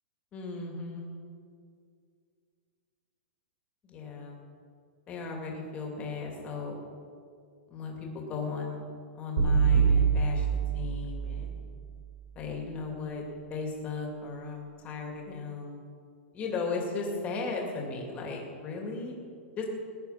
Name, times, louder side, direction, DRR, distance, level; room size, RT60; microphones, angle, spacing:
voice 1, 0.3-1.1 3.8-4.4 5.1-6.8 7.7-8.9 9.1-10.5 10.7-11.6 12.3-13.2 13.5-15.9 16.3-19.2 19.6-19.7, left 4 dB, 20° left, 0 dB, 2.5 m, -36 dB
sound 1, 9.4-11.6, right 6 dB, 80° right, 4.7 m, -25 dB
19.0 x 9.9 x 5.8 m, 2.3 s
supercardioid pair, 170°, 7 cm